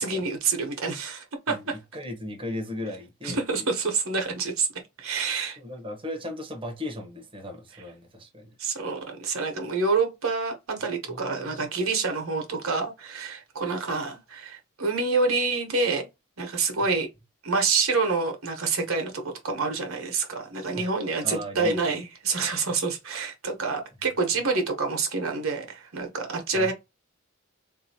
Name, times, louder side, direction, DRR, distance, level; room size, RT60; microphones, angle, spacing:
voice 1, 0.0-1.7 3.2-4.7 5.0-5.6 8.6-16.1 16.4-17.1 17.4-26.7, right 4 dB, 70° right, 1.0 m, -27 dB
voice 2, 1.5-3.7 5.6-8.5 11.1-11.2 11.5-11.6 20.7-20.9 21.2-21.8 26.5-26.7, left 1 dB, 25° right, 0.8 m, -37 dB
3.8 x 2.7 x 2.7 m
head